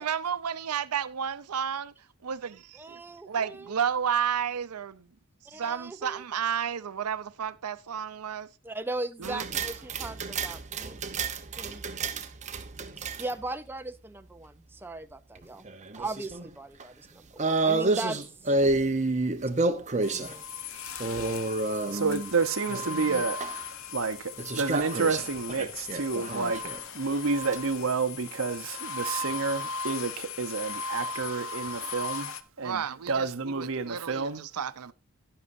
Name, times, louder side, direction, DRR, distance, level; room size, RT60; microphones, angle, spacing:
voice 1, 0.0-1.9 2.2-3.0 3.3-5.1 5.5-8.5 9.2-9.4 32.6-34.9, right 8 dB, 85° right, 0.6 m, -32 dB
voice 2, 2.8-3.7 5.5-6.2 8.6-11.0 11.6-11.8 13.2-15.7 16.0-18.2 18.5-18.6 20.1-20.4 21.9-22.0, right 2 dB, 10° right, 0.4 m, -38 dB
sound 1, 9.2-13.4 15.4-16.5 16.8-16.9 17.4-20.3 21.0-22.3 22.7-23.5 24.4-26.8 27.3-27.6, right 3 dB, 30° right, 0.9 m, -30 dB
sound 2, 20.0-32.4, left 4 dB, 65° left, 0.9 m, -38 dB
voice 3, 21.9-23.4 23.9-34.4, right 4 dB, 60° right, 0.9 m, -30 dB
11.5 x 11.0 x 2.6 m
head